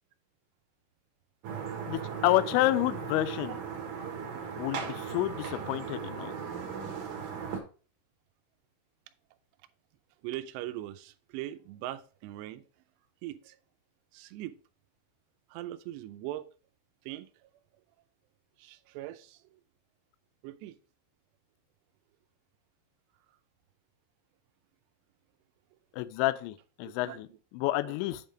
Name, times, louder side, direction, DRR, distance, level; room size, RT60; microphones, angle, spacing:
sound 1, 1.4-7.6, right 6 dB, 65° right, 2.2 m, -37 dB
voice 1, 1.9-3.6 4.6-6.3 25.9-27.3 27.5-28.2, left 16 dB, 85° left, 2.8 m, -29 dB
voice 2, 10.2-12.6 13.2-13.6 14.1-14.6 15.5-16.5 17.1-17.5 18.6-19.4 20.4-20.8 26.8-27.4 27.8-27.9, right 14 dB, 80° right, 2.5 m, -41 dB
8.1 x 3.7 x 5.0 m
omnidirectional pair, 5.3 m